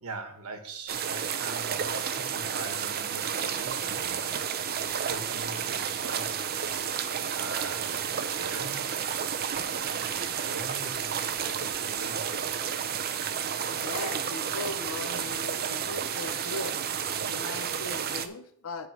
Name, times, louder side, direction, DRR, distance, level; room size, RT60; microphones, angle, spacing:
voice 1, 0.0-4.3 5.0-6.5 6.9-8.8 10.0-12.5, right 3 dB, 80° right, 7 dB, 1.2 m, -42 dB
sound 1, 0.9-18.3, right 8 dB, 45° right, 0.6 m, -31 dB
voice 2, 13.7-16.8 17.2-18.9, left 3 dB, 70° left, 8 dB, 0.8 m, -39 dB
9.0 x 3.8 x 6.8 m, 0.64 s
head